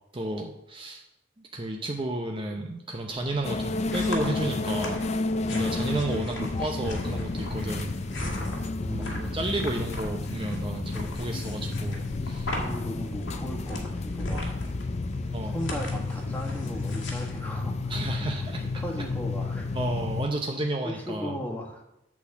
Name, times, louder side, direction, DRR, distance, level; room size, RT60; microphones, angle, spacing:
voice 1, 0.1-1.0 1.5-5.0 5.5-8.0 8.9-12.5 15.3-15.6 17.9-18.6 19.7-21.3, right 2 dB, 25° right, 2 dB, 0.6 m, -32 dB
sound 1, 3.2-18.4, left 1 dB, 85° left, 1.9 m, -39 dB
sound 2, 3.4-20.3, left 3 dB, 35° left, 0.5 m, -31 dB
voice 2, 8.8-9.8 12.5-14.4 15.4-17.9 18.6-19.7 20.8-21.8, equal, 10° left, -2 dB, 1.6 m, -36 dB
8.4 x 4.2 x 7.1 m, 0.88 s
head